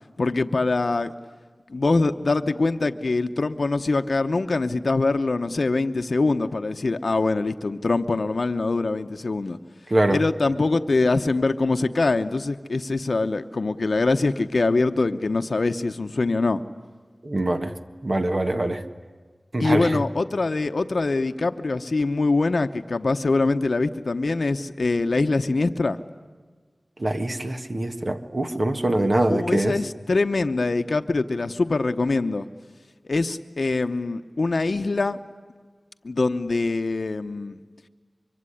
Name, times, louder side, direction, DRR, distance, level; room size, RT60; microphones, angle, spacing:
voice 1, 0.2-1.1 1.7-9.6 10.1-16.6 19.6-26.0 29.3-32.5 33.0-35.2 36.0-37.6, left 3 dB, 75° left, 8 dB, 0.9 m, -23 dB
voice 2, 9.9-10.2 17.2-17.7 18.0-18.8 19.5-20.0 27.0-29.8, right 1 dB, 45° right, 7 dB, 1.6 m, -23 dB
24.5 x 24.0 x 10.0 m, 1.5 s
wide cardioid pair, 65°, 0 cm